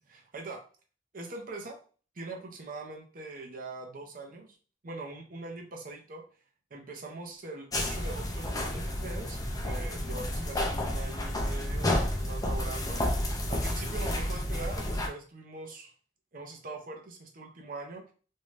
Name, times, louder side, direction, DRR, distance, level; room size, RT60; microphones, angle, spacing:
voice 1, 0.1-0.6 1.1-1.8 2.1-4.6 4.8-6.2 6.7-9.4 9.6-13.0 13.5-15.9 16.3-18.1, right 3 dB, 50° right, 2 dB, 0.6 m, -42 dB
sound 1, 7.7-15.1, left 1 dB, 20° left, 0.4 m, -31 dB
2.6 x 2.2 x 3.2 m, 0.39 s
head